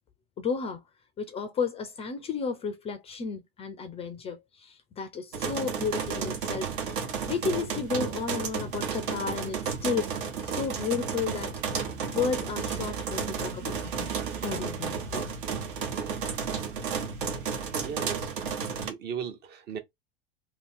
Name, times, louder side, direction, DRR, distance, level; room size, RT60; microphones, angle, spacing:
voice 1, 0.4-0.8 1.2-7.0 7.3-10.1 10.4-11.5 12.1-14.1 14.4-15.2, left 5 dB, 20° left, 0.5 m, -32 dB
sound 1, 5.3-18.9, right 6 dB, 55° right, 1.1 m, -32 dB
voice 2, 17.8-18.3 18.8-19.8, right 8 dB, 35° right, 0.9 m, -36 dB
2.8 x 2.8 x 4.4 m
figure-of-eight pair, 85°, 31 cm